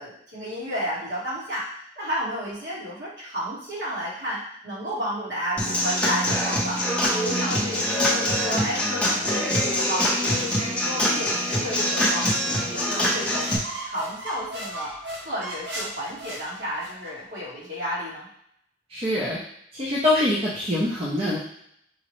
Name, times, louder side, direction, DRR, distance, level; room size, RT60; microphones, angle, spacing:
voice 1, 0.0-1.7 1.9-13.5 13.8-14.9 15.2-18.3, equal, 65° right, -7 dB, 1.5 m, -32 dB
Human voice / Acoustic guitar / Drum, 5.6-13.6, left 1 dB, 5° left, 0.7 m, -24 dB
sound 1, 13.1-17.1, right 1 dB, 80° right, 0.7 m, -37 dB
voice 2, 18.9-19.4 19.7-21.4, left 1 dB, 30° right, -6 dB, 0.5 m, -24 dB
4.8 x 2.1 x 3.0 m, 0.72 s
head